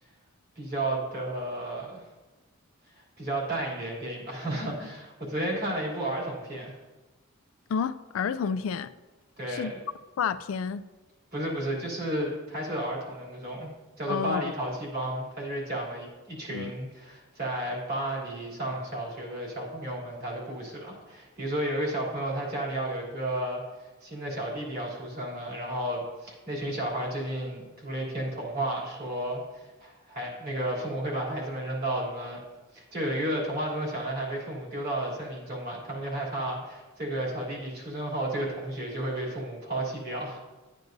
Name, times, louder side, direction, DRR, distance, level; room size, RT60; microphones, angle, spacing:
voice 1, 0.5-2.1 3.2-6.8 9.4-9.7 11.3-13.7 14.0-32.4 32.7-40.4, right 1 dB, 45° right, 3.1 m, -32 dB
voice 2, 7.7-8.9 9.5-9.7 10.2-10.8 14.1-14.5 16.5-16.7, left 6 dB, 70° left, 0.3 m, -30 dB
12.0 x 9.1 x 2.7 m
head